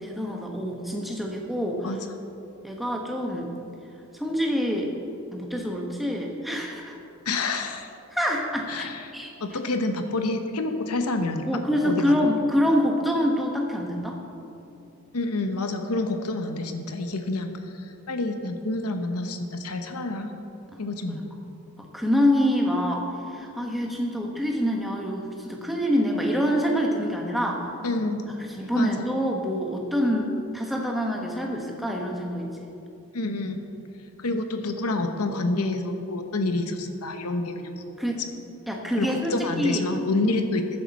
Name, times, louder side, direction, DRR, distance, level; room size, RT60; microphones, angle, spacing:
voice 1, 0.0-1.9 2.6-3.5 4.1-4.9 5.3-7.0 8.1-9.3 11.5-14.2 21.1-21.3 21.9-27.7 28.4-32.7 38.0-38.2 38.7-39.3 39.6-39.8, equal, ahead, -1 dB, 1.2 m, -26 dB
voice 2, 7.3-7.9 8.7-9.0 9.4-12.2 15.1-20.3 20.8-21.3 27.8-28.9 33.1-33.6 34.2-37.9 39.0-40.6, left 2 dB, 90° left, 6 dB, 1.0 m, -28 dB
14.5 x 9.8 x 4.2 m, 2.7 s
head